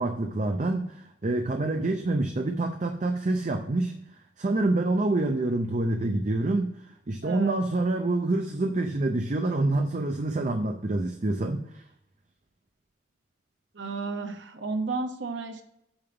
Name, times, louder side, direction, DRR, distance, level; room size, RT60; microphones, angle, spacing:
voice 1, 0.0-3.9 4.4-6.7 7.1-11.8, right 2 dB, 40° right, 5 dB, 0.6 m, -27 dB
voice 2, 7.2-7.6 13.7-15.6, right 3 dB, 75° right, 6 dB, 1.0 m, -32 dB
8.8 x 3.5 x 5.7 m, 0.80 s
head